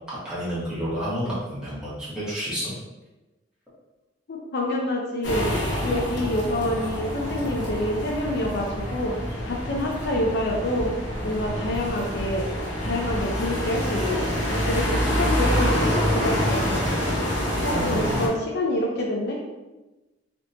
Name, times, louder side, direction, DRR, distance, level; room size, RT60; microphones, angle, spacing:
voice 1, 0.2-2.7 17.7-18.1, equal, 5° right, -10 dB, 1.3 m, -29 dB
voice 2, 4.3-5.5 5.8-10.9 11.2-12.4 12.8-17.0 17.6-19.4, left 1 dB, 60° left, 0 dB, 0.5 m, -27 dB
sound 1, 5.2-18.3, equal, 75° left, 1.0 m, -26 dB
3.4 x 2.8 x 2.7 m, 1.1 s
head